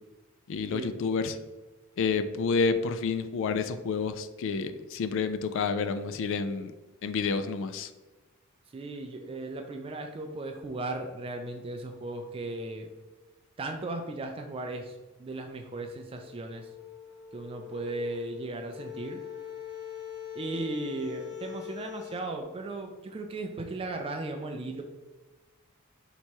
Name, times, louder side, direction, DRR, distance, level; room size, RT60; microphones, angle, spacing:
voice 1, 0.5-1.4 2.0-6.7 7.0-7.9, left 5 dB, 60° left, 10 dB, 0.3 m, -29 dB
voice 2, 8.7-12.9 13.6-16.7 17.3-19.2 20.3-24.8, right 2 dB, 25° right, 4 dB, 0.3 m, -36 dB
sound 1, 16.2-22.3, left 10 dB, 85° left, 0.7 m, -43 dB
3.4 x 3.0 x 4.4 m, 1.2 s
head